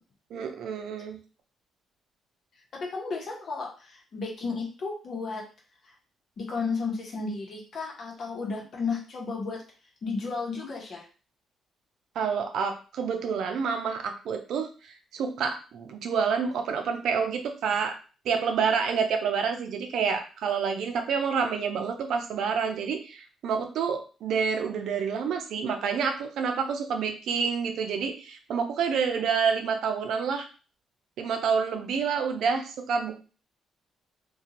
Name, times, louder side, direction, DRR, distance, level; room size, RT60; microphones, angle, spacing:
voice 1, 0.3-1.2 12.2-18.0 18.2-30.5 31.2-33.1, right 6 dB, 75° right, 5 dB, 0.5 m, -28 dB
voice 2, 2.7-5.4 5.8-5.9 6.4-9.6 10.0-11.1, left 4 dB, 55° left, -1 dB, 0.9 m, -33 dB
2.5 x 2.3 x 2.9 m, 0.36 s
cardioid pair, 90°, 0 cm